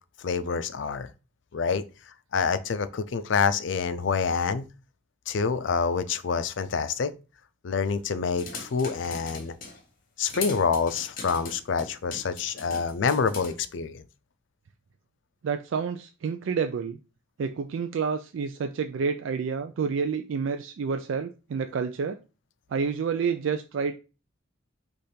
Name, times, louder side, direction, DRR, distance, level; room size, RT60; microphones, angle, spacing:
voice 1, 0.2-1.1 1.5-1.8 2.3-4.7 5.3-7.1 7.6-9.5 10.2-14.0, left 5 dB, 65° left, 0.4 m, -27 dB
sound 1, 8.4-9.8 10.3-13.5, left 4 dB, 45° left, 1.1 m, -40 dB
voice 2, 15.4-17.0 17.4-22.2 22.7-23.9, right 6 dB, 75° right, 0.4 m, -29 dB
5.0 x 2.5 x 4.2 m
head